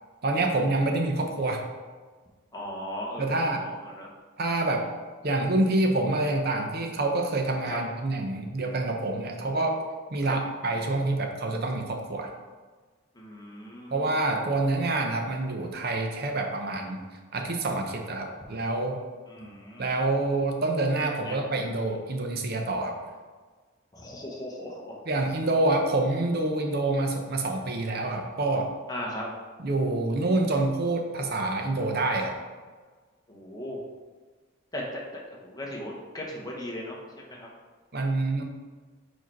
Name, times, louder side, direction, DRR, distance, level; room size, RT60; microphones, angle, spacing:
voice 1, 0.2-1.6 3.2-3.7 4.4-4.9 5.2-9.8 10.1-12.3 13.9-17.0 17.3-19.0 19.8-22.9 25.1-28.7 29.6-32.4 37.9-38.4, right 2 dB, 50° right, 3 dB, 0.7 m, -27 dB
voice 2, 2.5-4.1 7.7-7.8 10.3-10.4 13.2-13.9 19.3-19.8 21.2-21.4 23.9-25.0 28.9-29.3 33.3-33.8 34.7-35.0 35.3-37.5, equal, 20° left, -3 dB, 1.0 m, -37 dB
4.7 x 4.4 x 4.6 m, 1.4 s
head